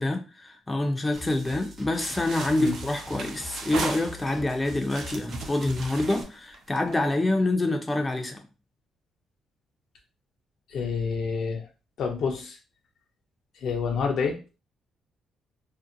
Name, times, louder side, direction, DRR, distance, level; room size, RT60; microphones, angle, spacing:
voice 1, 0.0-8.4, left 2 dB, 20° left, 0.4 m, -26 dB
sound 1, 1.1-6.2, left 1 dB, 45° right, 0.7 m, -43 dB
sound 2, 2.0-4.5 4.9-7.1, right 4 dB, 75° right, 0.5 m, -37 dB
voice 2, 10.7-11.7 12.0-12.6 13.5-14.4, left 5 dB, 70° left, 0.6 m, -28 dB
2.6 x 2.1 x 2.6 m
cardioid pair, 90°, 0 cm